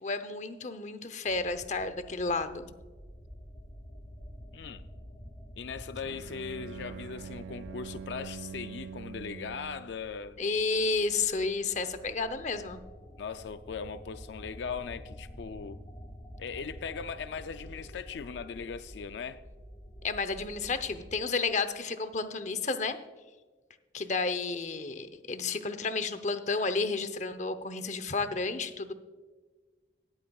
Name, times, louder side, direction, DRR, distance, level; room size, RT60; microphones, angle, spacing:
voice 1, 0.0-2.7 10.4-12.8 20.0-23.0 23.9-28.9, left 4 dB, 40° left, 11 dB, 0.7 m, -31 dB
sound 1, 1.3-21.1, equal, 25° left, 1.7 m, -49 dB
voice 2, 4.5-4.9 5.6-10.4 13.2-15.8 16.4-19.4, left 6 dB, 80° left, 10 dB, 0.4 m, -39 dB
Bowed string instrument, 6.0-10.0, right 6 dB, 85° right, 0.3 m, -44 dB
18.5 x 8.9 x 2.3 m, 1.3 s
head